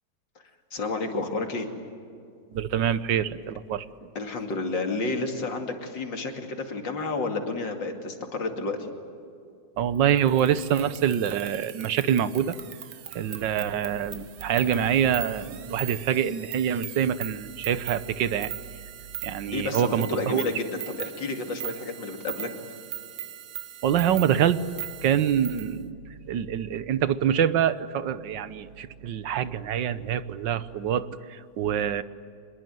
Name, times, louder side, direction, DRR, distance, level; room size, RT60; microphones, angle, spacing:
voice 1, 0.7-1.7 4.1-8.9 19.5-22.5, left 3 dB, 85° left, 4 dB, 3.2 m, -31 dB
voice 2, 2.5-3.8 9.8-12.6 13.1-18.5 19.2-20.4 23.8-24.6 25.0-26.0 26.3-32.0, right 9 dB, 80° right, 14 dB, 1.6 m, -25 dB
sound 1, 10.1-25.7, right 11 dB, 60° right, 1.3 m, -40 dB
25.0 x 22.0 x 9.3 m, 2.4 s
omnidirectional pair, 1.9 m